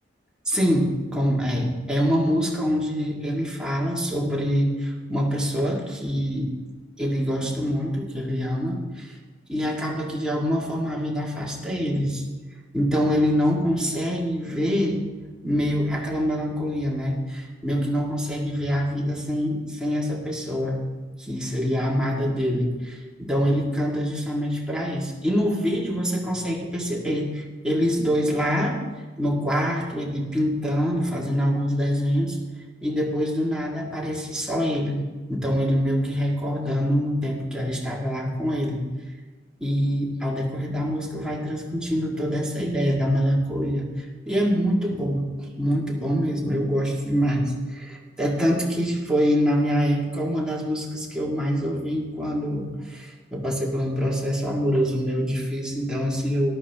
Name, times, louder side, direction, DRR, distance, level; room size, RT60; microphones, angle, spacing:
voice 1, 0.5-6.5 7.0-9.2 9.5-12.2 12.7-15.0 15.4-20.8 21.2-28.8 29.2-32.4 32.8-35.0 35.3-38.8 39.6-56.5, equal, 5° right, -3 dB, 2.1 m, -25 dB
14.0 x 12.0 x 3.6 m, 1.3 s
head